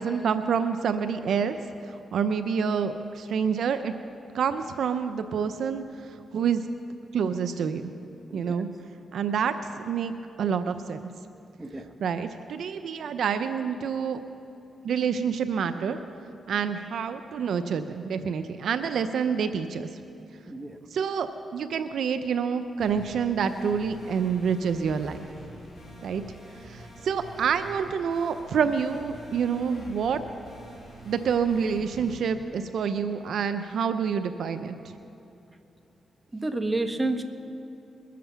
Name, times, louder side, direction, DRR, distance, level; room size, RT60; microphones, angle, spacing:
voice 1, 0.0-1.6 2.1-3.9 4.3-6.6 7.1-7.8 8.3-8.7 9.1-10.1 10.4-11.1 12.0-14.2 14.8-16.0 16.5-19.9 20.9-25.3 26.0-26.2 26.7-30.2 31.1-34.9, right 6 dB, 75° right, 9 dB, 0.6 m, -27 dB
voice 2, 11.6-11.9 20.5-20.8 36.3-37.2, right 2 dB, 20° right, 6 dB, 1.2 m, -30 dB
sound 1, 22.8-32.2, equal, 35° left, 4.7 m, -46 dB
22.0 x 7.6 x 7.0 m, 2.7 s
cardioid pair, 65°, 0 cm